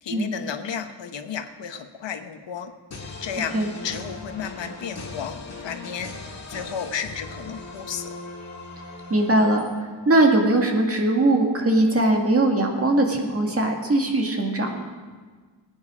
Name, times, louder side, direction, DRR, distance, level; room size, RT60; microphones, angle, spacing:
voice 1, 0.0-2.7 3.0-3.6 3.8-6.1 6.5-8.1, left 7 dB, 75° left, 8 dB, 1.0 m, -33 dB
sound 1, 2.9-9.9, left 3 dB, 35° left, 1.9 m, -39 dB
voice 2, 9.1-9.7 10.1-14.8, right 2 dB, 30° right, 2 dB, 1.9 m, -20 dB
20.0 x 9.5 x 4.9 m, 1.5 s
wide cardioid pair, 145°, 44 cm